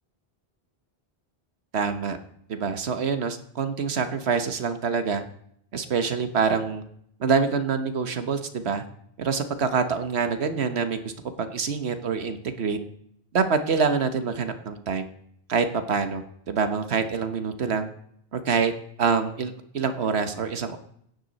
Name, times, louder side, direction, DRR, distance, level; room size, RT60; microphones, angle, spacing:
voice 1, 1.7-2.2 2.5-5.2 5.7-6.8 7.2-8.8 9.2-11.1 11.4-12.8 13.3-15.1 15.5-17.9 18.3-18.7 19.0-20.8, right 5 dB, 85° right, 9 dB, 1.3 m, -26 dB
17.0 x 9.6 x 4.1 m, 0.69 s
omnidirectional pair, 1.1 m